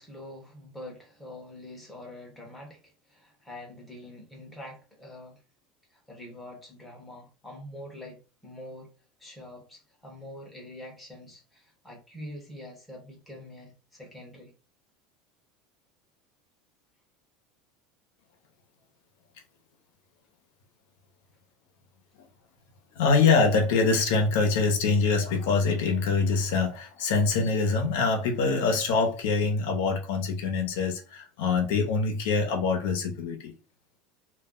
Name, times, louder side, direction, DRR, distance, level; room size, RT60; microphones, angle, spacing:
voice 1, 0.0-5.4 5.9-8.9 9.2-14.5, left 1 dB, 5° left, 0.8 m, -45 dB
voice 2, 23.0-33.5, left 4 dB, 70° left, 0.8 m, -24 dB
2.4 x 2.1 x 3.6 m
cardioid pair, 175°, 0 cm